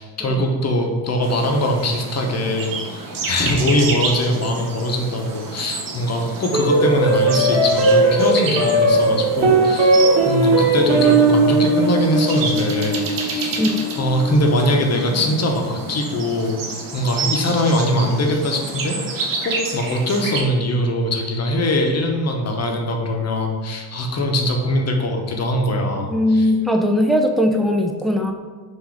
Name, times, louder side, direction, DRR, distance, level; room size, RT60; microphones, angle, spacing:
voice 1, 0.0-13.7 14.0-19.0 19.4-26.5, left 1 dB, 35° left, 2 dB, 0.8 m, -22 dB
sound 1, 1.2-20.4, right 3 dB, 50° right, 0.9 m, -30 dB
sound 2, 6.5-15.1, right 2 dB, 70° right, 1.2 m, -18 dB
voice 2, 26.0-28.3, left 1 dB, ahead, 3 dB, 0.3 m, -19 dB
3.9 x 2.6 x 4.5 m, 1.5 s
cardioid pair, 85°, 43 cm